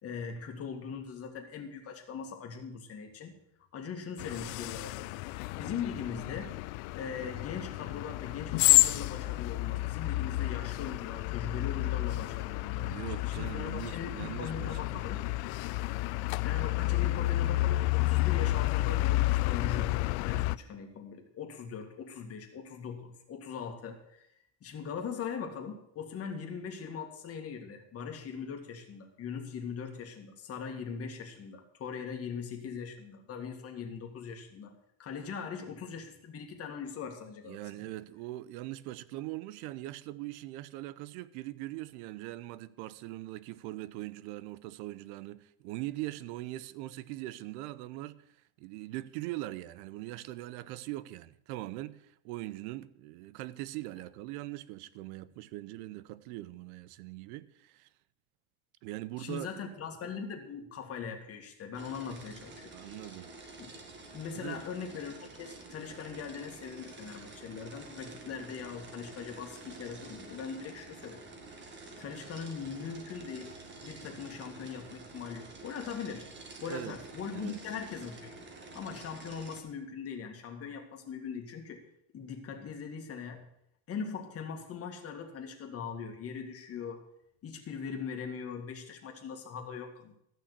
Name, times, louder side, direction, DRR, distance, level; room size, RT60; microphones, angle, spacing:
voice 1, 0.0-3.3 3.7-5.1 5.5-6.6 6.9-15.2 16.4-19.9 20.2-24.3 24.6-34.7 35.0-37.6 59.2-62.7 63.6-63.7 64.1-71.2 72.0-73.5 73.8-76.3 76.6-78.3 78.7-81.8 82.1-83.4 83.9-87.0 87.4-90.2, left 6 dB, 30° left, 2.0 m, -41 dB
sound 1, 4.2-20.6, left 19 dB, 60° left, 0.5 m, -30 dB
voice 2, 12.7-15.1 37.4-48.2 48.6-57.9 58.8-59.5 62.7-63.3 64.3-64.6 76.7-77.0 77.3-77.6, right 16 dB, 80° right, 0.8 m, -41 dB
sound 2, 61.7-79.6, right 3 dB, 25° right, 1.8 m, -49 dB
14.0 x 6.2 x 8.2 m
cardioid pair, 155°, 44 cm